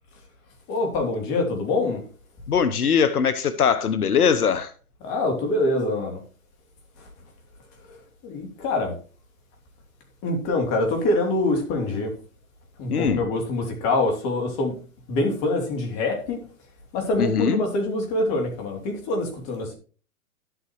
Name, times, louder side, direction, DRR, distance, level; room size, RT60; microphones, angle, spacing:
voice 1, 0.7-2.0 5.0-6.2 7.0-7.1 8.2-8.9 10.2-12.1 12.8-14.7 15.1-16.4 16.9-19.7, left 2 dB, 35° left, 3.1 m, -25 dB
voice 2, 2.5-4.7 12.9-13.2 17.2-17.6, left 7 dB, 90° left, 0.9 m, -21 dB
11.5 x 8.2 x 3.1 m
hypercardioid pair, 130°, 43 cm